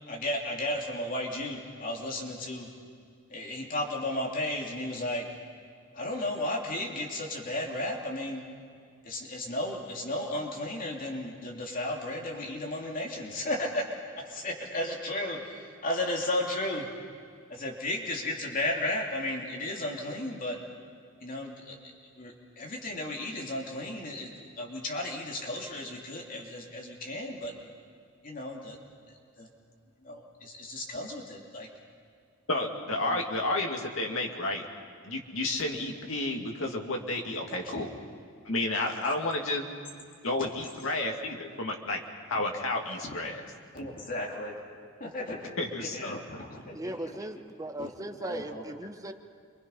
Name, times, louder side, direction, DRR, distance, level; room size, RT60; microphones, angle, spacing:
voice 1, 0.0-2.7 3.3-5.3 5.9-8.4 9.0-13.9 14.3-16.9 17.5-20.6 21.2-21.8 22.2-27.5 28.2-28.8 29.4-29.5 30.0-31.7 33.1-33.2 37.6-37.7 43.7-44.5 45.0-47.1 47.8-47.9 48.2-48.6, left 1 dB, 45° left, -1 dB, 2.8 m, -34 dB
voice 2, 32.5-34.7 35.0-38.0 38.4-39.7 40.2-42.0 42.3-43.4 45.6-46.4, left 2 dB, 70° left, 1 dB, 2.4 m, -31 dB
voice 3, 46.7-49.1, right 1 dB, 15° right, 7 dB, 1.0 m, -38 dB
29.0 x 24.0 x 5.7 m, 2.2 s
head